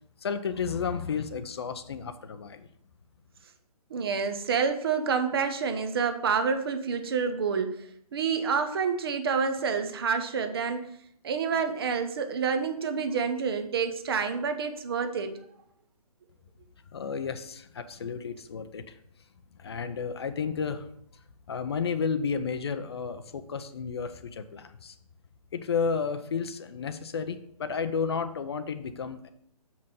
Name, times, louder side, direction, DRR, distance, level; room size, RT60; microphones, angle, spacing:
voice 1, 0.2-2.7 16.9-19.0 19.6-20.9 21.5-25.0 25.5-29.3, left 6 dB, 40° left, 11 dB, 0.5 m, -32 dB
voice 2, 3.9-7.9 8.1-10.9 11.2-15.4, right 6 dB, 40° right, 7 dB, 0.8 m, -28 dB
6.9 x 5.4 x 5.3 m, 0.68 s
figure-of-eight pair, 150°, 20 cm